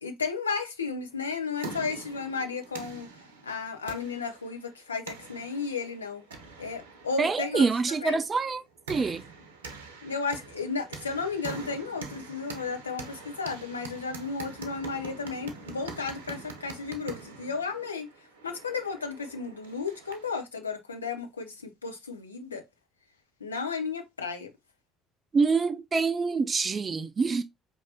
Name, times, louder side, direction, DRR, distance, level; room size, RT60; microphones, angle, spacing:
voice 1, 0.0-3.1 3.4-6.2 6.6-7.7 8.0-8.2 10.0-18.1 18.4-21.6 21.8-22.6 23.4-24.5, left 4 dB, 85° left, 0.6 m, -33 dB
sound 1, 1.2-20.4, right 3 dB, 80° right, 0.7 m, -44 dB
voice 2, 7.2-8.6 8.9-9.2 25.3-27.4, right 4 dB, 35° right, 0.4 m, -26 dB
4.5 x 3.3 x 2.7 m
figure-of-eight pair, 50°, 0 cm